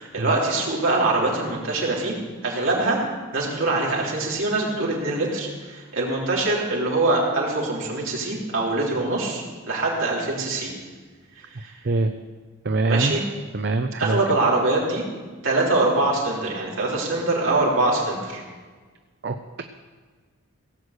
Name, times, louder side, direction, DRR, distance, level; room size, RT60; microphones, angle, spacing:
voice 1, 0.0-2.1 2.4-3.0 3.3-10.7 11.6-11.7 12.9-13.2 14.0-15.0 15.4-18.4, right 2 dB, 65° right, -4 dB, 3.5 m, -23 dB
voice 2, 12.6-13.1 13.5-14.2 19.2-19.6, right 2 dB, 50° right, 7 dB, 0.5 m, -23 dB
17.5 x 6.5 x 8.1 m, 1.4 s
head